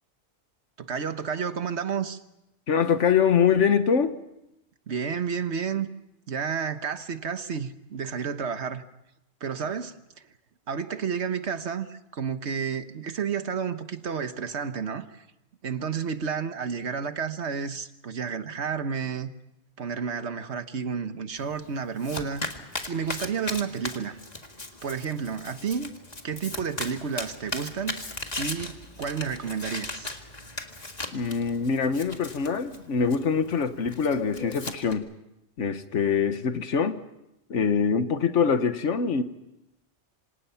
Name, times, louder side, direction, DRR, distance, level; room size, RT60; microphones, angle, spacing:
voice 1, 0.8-2.2 4.9-5.9 6.3-8.8 9.4-9.9 10.7-15.2 15.6-19.3 19.8-22.5 22.9-24.2 24.8-25.9 26.2-28.0 28.4-30.1, right 6 dB, 70° right, 10 dB, 1.5 m, -31 dB
voice 2, 2.7-4.2 31.1-35.1 35.6-37.0 37.5-39.2, left 6 dB, 90° left, 10 dB, 1.5 m, -24 dB
Domestic sounds home sounds, 21.4-34.9, left 2 dB, 35° left, 2.0 m, -38 dB
27.0 x 26.5 x 5.8 m, 0.88 s
omnidirectional pair, 1.2 m